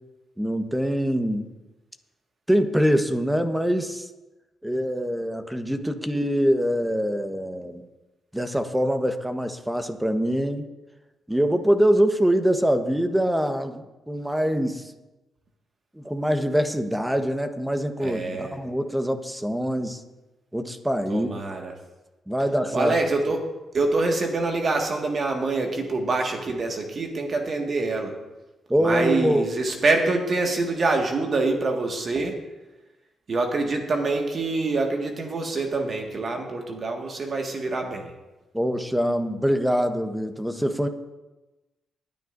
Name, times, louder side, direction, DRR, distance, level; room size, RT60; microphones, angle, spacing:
voice 1, 0.4-1.5 2.5-4.1 4.6-7.8 8.3-10.7 11.3-14.8 16.0-20.0 20.5-21.3 22.3-22.9 28.7-29.4 38.5-40.9, equal, 5° right, 8 dB, 1.3 m, -24 dB
voice 2, 18.0-18.6 21.1-21.7 22.7-23.5 23.7-28.2 28.8-32.4 33.3-38.1, right 3 dB, 50° right, 3 dB, 1.9 m, -25 dB
20.0 x 9.3 x 2.7 m, 1.1 s
hypercardioid pair, 40°, 0 cm